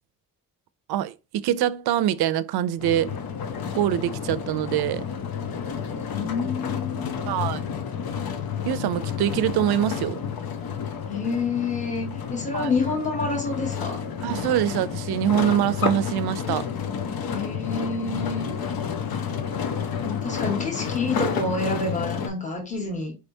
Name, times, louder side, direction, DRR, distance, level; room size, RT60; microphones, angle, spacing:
voice 1, 0.9-3.1 3.7-5.1 7.3-7.7 8.6-10.2 12.5-12.7 14.2-16.7, right 11 dB, 85° right, 0.5 m, -24 dB
sound 1, 2.8-22.3, left 7 dB, 70° left, 0.9 m, -30 dB
voice 2, 6.1-7.3 11.1-14.0 17.3-18.5 20.0-23.1, left 3 dB, 20° left, 1.4 m, -28 dB
4.8 x 3.4 x 2.7 m
cardioid pair, 170°, 37 cm